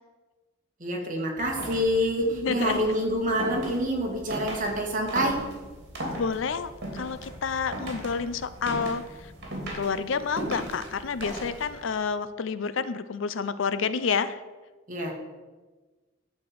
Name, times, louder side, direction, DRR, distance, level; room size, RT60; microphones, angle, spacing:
voice 1, 0.8-5.4 14.9-15.1, equal, 45° right, 0 dB, 2.1 m, -27 dB
sound 1, 1.4-11.9, right 1 dB, 60° right, 2.9 m, -38 dB
voice 2, 2.3-3.0 6.2-9.3 9.7-14.4, left 5 dB, 70° left, 14 dB, 0.5 m, -29 dB
11.5 x 4.4 x 7.7 m, 1.3 s
head